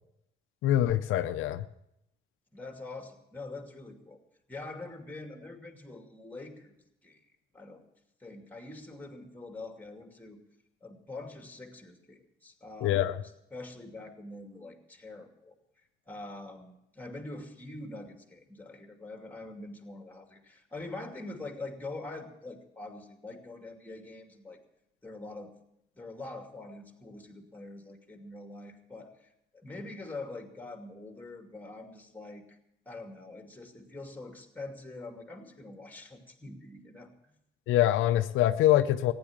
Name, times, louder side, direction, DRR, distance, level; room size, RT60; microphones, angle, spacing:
voice 1, 0.6-1.6 12.8-13.1 37.7-39.1, left 13 dB, 90° left, 10 dB, 0.6 m, -24 dB
voice 2, 2.5-4.2 4.5-6.7 7.0-7.2 7.5-7.8 8.2-10.4 10.8-15.5 16.1-24.6 25.0-25.5 25.9-32.6 32.9-37.3, left 2 dB, 10° left, 4 dB, 2.5 m, -44 dB
15.0 x 10.0 x 7.2 m, 0.81 s
cardioid pair, 90°, 20 cm